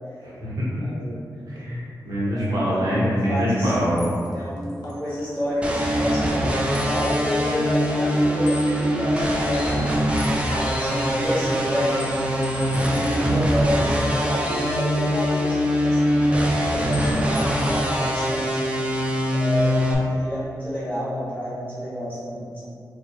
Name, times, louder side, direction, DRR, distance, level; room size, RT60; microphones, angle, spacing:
voice 1, 0.2-0.7 1.5-4.0, equal, 65° right, -8 dB, 0.9 m, -24 dB
voice 2, 0.8-1.2 2.2-3.8 4.3-10.0 10.5-12.0 12.8-19.0 19.3-22.6, equal, 25° left, -12 dB, 1.4 m, -29 dB
sound 1, 3.5-3.6 4.0-5.9 6.7-7.3 7.6-9.0 9.3-11.1 11.5-15.6 16.0-16.7 16.9-17.9, left 4 dB, 80° left, 0.4 m, -41 dB
sound 2, 5.6-19.9, equal, 15° right, 0.3 m, -23 dB
4.4 x 2.2 x 2.8 m, 2.4 s
wide cardioid pair, 175°, 7 cm